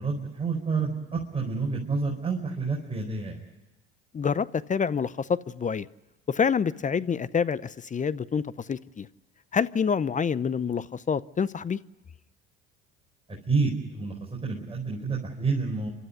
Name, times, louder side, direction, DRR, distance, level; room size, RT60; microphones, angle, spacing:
voice 1, 0.0-3.4 13.5-14.1 14.4-15.9, right 4 dB, 15° right, -2 dB, 4.7 m, -28 dB
voice 2, 4.1-5.9 6.3-8.4 8.7-9.1 9.5-11.8, left 6 dB, 25° left, 18 dB, 0.7 m, -27 dB
29.5 x 13.0 x 9.7 m, 1.1 s
hypercardioid pair, 80°, 32 cm